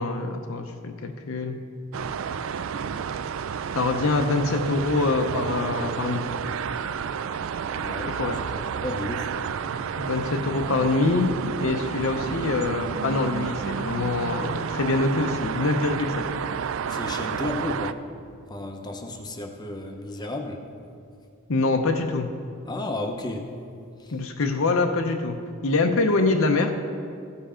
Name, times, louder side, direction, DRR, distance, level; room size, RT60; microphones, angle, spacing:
voice 1, 0.0-1.6 3.7-6.3 8.2-8.4 10.0-11.3 11.6-16.2 21.5-22.3 24.1-25.4 25.6-26.7, left 3 dB, 70° left, 5 dB, 0.6 m, -24 dB
sound 1, 1.9-17.9, right 7 dB, 65° right, 0.3 m, -30 dB
voice 2, 7.8-8.2 8.5-9.3 16.9-18.0 18.5-20.6 22.7-23.5 24.0-24.2, left 2 dB, 20° left, 4 dB, 0.6 m, -33 dB
15.0 x 5.6 x 5.0 m, 2.3 s
head